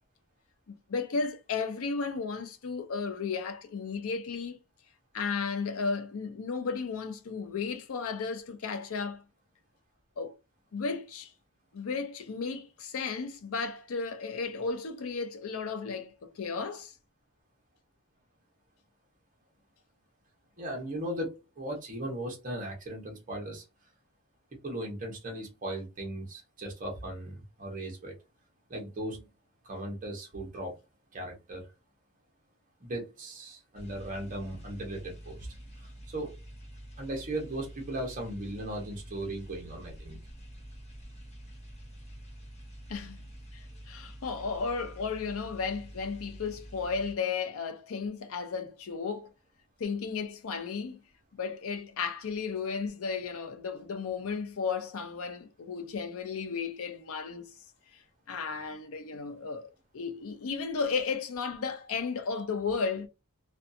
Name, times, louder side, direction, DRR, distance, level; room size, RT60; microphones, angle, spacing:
voice 1, 0.7-4.6 5.1-9.2 10.2-10.3 10.7-11.3 11.7-16.9 42.9-43.2 43.5-49.3 49.8-51.0 51.3-57.5 58.3-63.1, left 5 dB, 65° left, 0.5 m, -34 dB
voice 2, 20.6-23.6 24.6-28.1 28.7-29.3 29.6-30.8 31.1-31.7 32.8-35.5 35.8-36.4 37.0-40.2, right 1 dB, 35° right, 0.8 m, -37 dB
sound 1, 33.8-47.1, right 1 dB, 30° left, 0.8 m, -47 dB
2.5 x 2.3 x 2.6 m
head